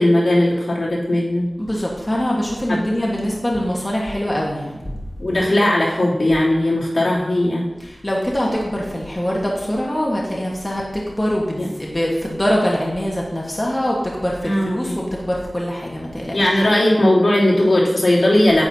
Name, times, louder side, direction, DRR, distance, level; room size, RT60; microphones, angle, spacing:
voice 1, 0.0-1.4 2.7-2.8 5.2-7.6 11.6-11.7 14.4-15.0 16.3-18.6, left 1 dB, 65° left, -8 dB, 3.2 m, -17 dB
voice 2, 1.6-4.8 7.8-16.6, equal, 25° left, -3 dB, 1.5 m, -23 dB
9.9 x 8.8 x 2.9 m, 1.1 s
wide cardioid pair, 55°, 0 cm